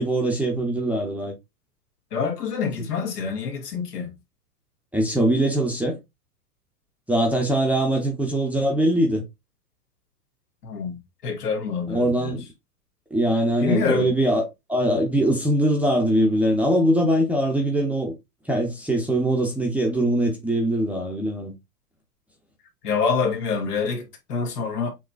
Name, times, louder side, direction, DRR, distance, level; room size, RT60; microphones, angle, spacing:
voice 1, 0.0-1.3 4.9-6.0 7.1-9.2 11.9-12.4 13.1-18.1 18.5-21.5, right 1 dB, 5° right, 0.7 m, -22 dB
voice 2, 2.1-4.2 10.6-11.0 11.2-12.4 13.6-14.1 22.8-24.9, left 5 dB, 75° left, 1.9 m, -26 dB
6.5 x 2.9 x 2.4 m
hypercardioid pair, 125°, 47 cm